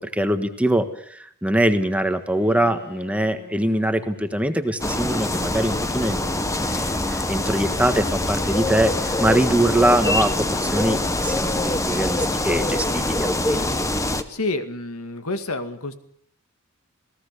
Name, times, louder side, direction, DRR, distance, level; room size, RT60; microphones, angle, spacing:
voice 1, 0.0-6.2 6.5-13.7, right 1 dB, 5° right, 8 dB, 1.4 m, -23 dB
Bowed string instrument, 2.1-8.4, left 2 dB, 45° left, 3.3 m, -46 dB
sound 1, 4.8-14.2, left 1 dB, 15° left, 1.3 m, -24 dB
voice 2, 14.0-15.9, left 2 dB, 65° left, 9 dB, 2.1 m, -29 dB
28.5 x 18.0 x 6.8 m, 0.64 s
head